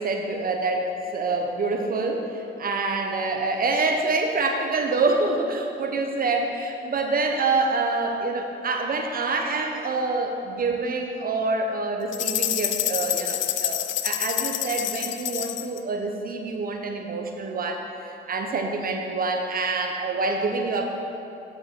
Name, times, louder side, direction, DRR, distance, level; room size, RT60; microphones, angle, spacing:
voice 1, 0.0-20.9, right 3 dB, 45° right, 3 dB, 0.7 m, -26 dB
sound 1, 12.1-15.8, left 12 dB, 75° left, 0.4 m, -27 dB
7.9 x 5.4 x 5.7 m, 2.9 s
cardioid pair, 90°, 20 cm